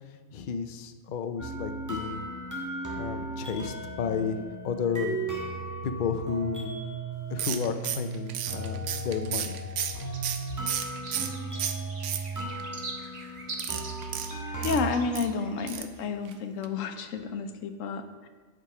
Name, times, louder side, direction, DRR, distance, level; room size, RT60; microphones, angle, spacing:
voice 1, 0.3-2.3 3.0-5.2 5.8-6.7 7.3-9.6, left 6 dB, 55° left, 8 dB, 0.6 m, -32 dB
sound 1, 1.4-14.9, right 2 dB, 15° right, 1.4 m, -36 dB
sound 2, 7.3-8.8 9.2-15.8, right 3 dB, 40° right, 0.8 m, -44 dB
sound 3, 7.4-11.3 11.6-12.6 13.5-15.3 15.7-16.0 16.3-16.4 16.6-16.7, right 9 dB, 70° right, 0.9 m, -33 dB
voice 2, 14.6-18.3, left 4 dB, 85° left, 8 dB, 1.1 m, -31 dB
8.3 x 5.2 x 4.8 m, 1.5 s
omnidirectional pair, 1.3 m